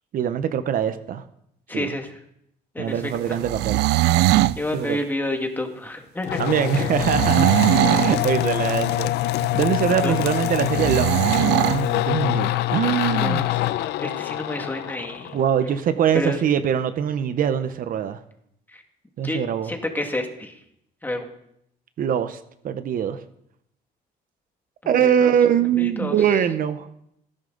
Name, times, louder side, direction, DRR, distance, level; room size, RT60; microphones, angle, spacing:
voice 1, 0.1-1.2 1.7-1.9 2.8-3.8 4.7-5.0 6.4-9.1 9.5-11.2 11.6-13.5 15.3-18.2 19.2-19.7 22.0-23.2 24.9-26.9, right 8 dB, 55° right, 11 dB, 0.9 m, -23 dB
voice 2, 1.7-2.1 2.8-2.9 4.6-6.4 10.0-10.1 13.2-13.6 14.0-15.3 16.2-16.4 18.7-18.8 19.2-19.4 19.7-20.5 21.0-21.3 24.8-25.3 25.8-26.2, left 1 dB, 10° left, 4 dB, 2.1 m, -29 dB
sound 1, 3.3-4.6 6.9-8.2 10.7-11.8, right 17 dB, 85° right, 0.4 m, -20 dB
sound 2, 6.2-15.8, left 16 dB, 80° left, 0.6 m, -25 dB
16.5 x 10.5 x 4.0 m, 0.75 s
cardioid pair, 110°, 17 cm